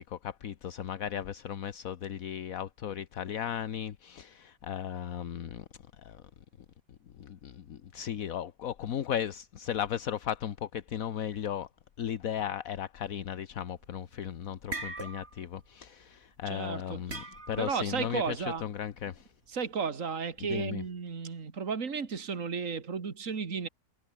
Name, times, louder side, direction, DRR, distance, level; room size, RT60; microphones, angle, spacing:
voice 1, 0.0-5.6 6.0-6.2 7.2-11.7 12.0-19.3 20.5-20.8, left 9 dB, 75° left, 1.4 m, -36 dB
sound 1, 13.8-14.1 14.5-15.5 15.8-16.1 17.1-17.8, right 2 dB, 45° right, 4.1 m, -40 dB
voice 2, 16.5-17.0 17.6-18.6 19.5-23.7, right 5 dB, 65° right, 2.4 m, -33 dB
omnidirectional pair, 1.5 m